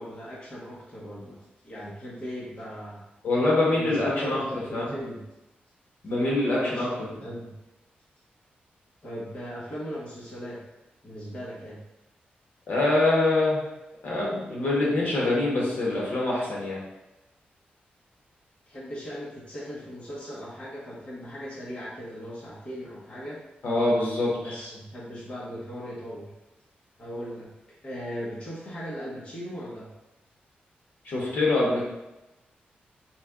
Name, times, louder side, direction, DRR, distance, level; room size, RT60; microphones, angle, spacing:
voice 1, 0.0-1.4 1.6-3.0 3.7-5.2 6.6-6.9 7.2-7.6 9.0-10.6 11.0-11.8 18.7-23.4 24.3-26.3 27.0-27.5 27.8-29.9, equal, 35° left, -6 dB, 0.9 m, -38 dB
voice 2, 3.2-4.4 4.7-4.9 6.0-6.9 12.7-13.6 14.0-16.8 23.6-24.6 31.0-31.8, left 2 dB, 65° left, -4 dB, 1.1 m, -24 dB
4.2 x 2.2 x 3.6 m, 0.99 s
wide cardioid pair, 155°, 3 cm